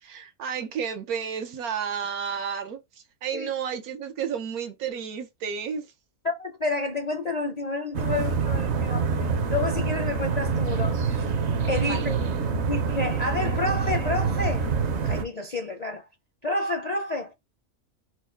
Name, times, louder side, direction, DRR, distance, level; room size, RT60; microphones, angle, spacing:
voice 1, 0.0-2.8 3.2-5.9 11.8-12.1, right 7 dB, 85° right, 1.3 m, -31 dB
voice 2, 6.2-11.4 11.6-12.2 12.7-14.7 15.0-16.1 16.4-17.3, left 3 dB, 45° left, 0.5 m, -30 dB
sound 1, 7.9-15.2, right 5 dB, 55° right, 1.0 m, -26 dB
4.5 x 2.1 x 4.4 m
omnidirectional pair, 1.5 m